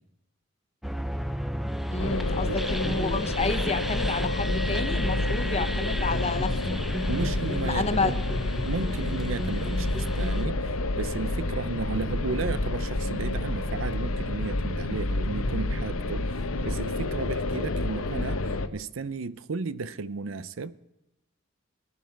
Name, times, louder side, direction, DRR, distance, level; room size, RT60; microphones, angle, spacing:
sound 1, 0.8-10.4, equal, ahead, 0.5 m, -34 dB
voice 1, 1.9-6.8 7.6-8.2, left 3 dB, 30° left, 0.8 m, -30 dB
sound 2, 2.0-18.7, left 2 dB, 85° left, 0.9 m, -29 dB
voice 2, 2.5-3.0 7.1-8.2 8.6-20.8, right 4 dB, 65° right, 0.6 m, -34 dB
19.5 x 9.8 x 4.6 m
head